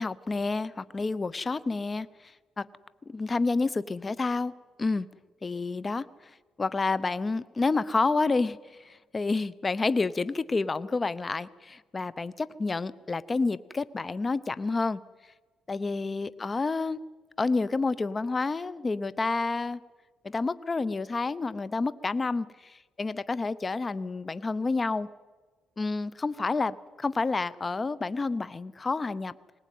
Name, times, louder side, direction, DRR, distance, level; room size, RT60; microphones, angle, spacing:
voice 1, 0.0-2.1 2.6-2.7 3.1-4.5 4.8-5.1 5.4-6.1 6.6-15.0 15.7-17.0 17.4-19.8 20.2-25.1 25.8-29.3, left 3 dB, 30° left, 17 dB, 0.8 m, -29 dB
20.0 x 19.0 x 9.4 m, 1.3 s
cardioid pair, 90°, 0 cm